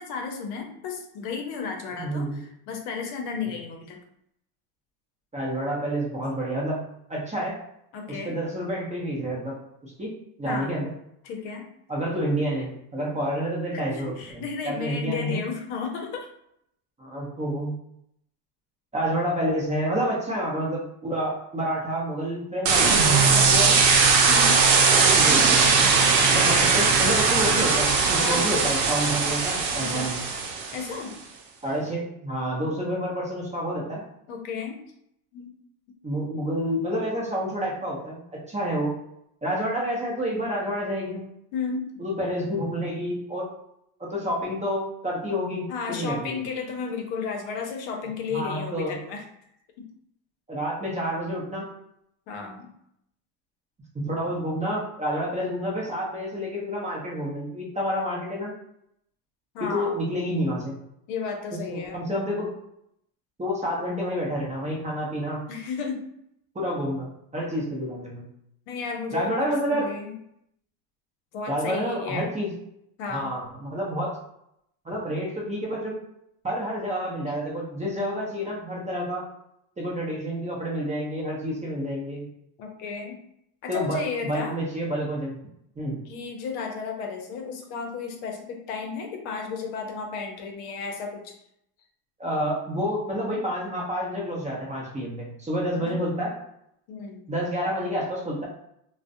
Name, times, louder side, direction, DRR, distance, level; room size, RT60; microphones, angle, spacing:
voice 1, 0.0-4.0 7.9-8.4 10.4-10.8 11.2-11.7 13.7-16.3 24.2-24.6 26.3-26.7 28.2-28.5 29.8-30.1 30.7-31.2 34.3-34.8 35.3-35.5 39.6-39.7 41.5-41.9 45.7-49.2 49.8-49.9 52.3-52.7 59.5-60.0 61.1-62.0 65.5-66.1 68.7-70.1 71.3-72.3 73.0-73.3 82.6-83.2 83.6-84.6 86.1-91.4 95.7-96.0 96.9-97.2, left 5 dB, 65° left, 3 dB, 0.7 m, -33 dB
voice 2, 1.9-2.4 5.3-6.8 7.1-7.6 8.1-9.5 9.8-10.1 10.4-10.9 11.9-15.4 17.0-17.8 18.9-23.8 24.9-25.7 26.3-30.2 31.6-34.0 36.0-38.2 38.5-38.9 39.4-41.2 42.0-43.4 44.0-46.4 48.3-49.0 50.5-51.7 53.9-58.5 59.6-60.8 61.7-62.5 63.4-65.4 66.5-67.1 67.3-68.2 69.1-69.9 71.5-72.5 73.1-74.2 74.8-75.9 76.4-79.2 79.8-82.3 83.7-85.4 85.8-86.0 92.2-96.3 97.3-98.5, equal, 15° right, -4 dB, 0.6 m, -29 dB
sound 1, 22.7-30.9, right 4 dB, 75° right, 0.7 m, -20 dB
2.3 x 2.1 x 2.6 m, 0.75 s
supercardioid pair, 95°, 49 cm